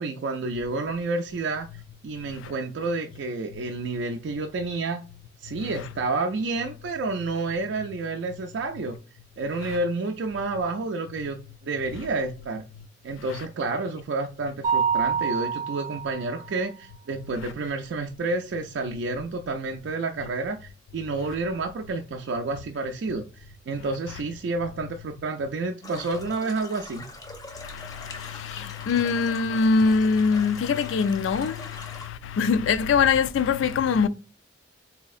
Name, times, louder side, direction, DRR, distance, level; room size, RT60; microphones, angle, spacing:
voice 1, 0.0-5.0 5.4-9.0 9.4-12.6 13.0-27.1, right 3 dB, 65° right, 0.3 m, -30 dB
Mallet percussion, 14.6-16.4, right 7 dB, 20° right, 0.7 m, -26 dB
sound 1, 25.8-32.1, left 2 dB, 20° left, 0.5 m, -43 dB
voice 2, 27.6-34.1, left 5 dB, 75° left, 0.3 m, -24 dB
4.1 x 2.8 x 2.3 m
head